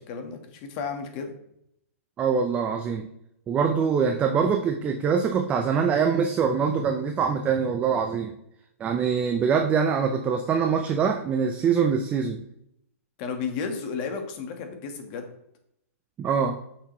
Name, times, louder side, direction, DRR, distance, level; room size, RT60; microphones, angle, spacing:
voice 1, 0.1-1.3 13.2-15.3, left 5 dB, 35° left, 5 dB, 1.4 m, -33 dB
voice 2, 2.2-3.1 3.5-8.3 8.8-12.4 16.2-16.6, right 6 dB, 15° right, 5 dB, 0.5 m, -24 dB
8.0 x 6.0 x 3.1 m, 0.76 s
hypercardioid pair, 150°, 8 cm